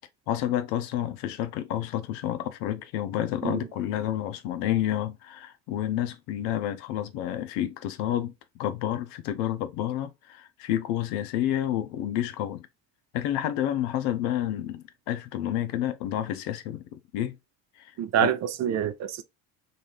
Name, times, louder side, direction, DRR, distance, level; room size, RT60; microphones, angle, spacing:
voice 1, 0.3-12.7 13.1-17.4 17.8-17.9 18.2-18.3, left 12 dB, 80° left, 0.6 m, -29 dB
voice 2, 18.0-19.2, right 9 dB, 40° right, 0.4 m, -26 dB
2.6 x 2.4 x 3.2 m
supercardioid pair, 85°, 41 cm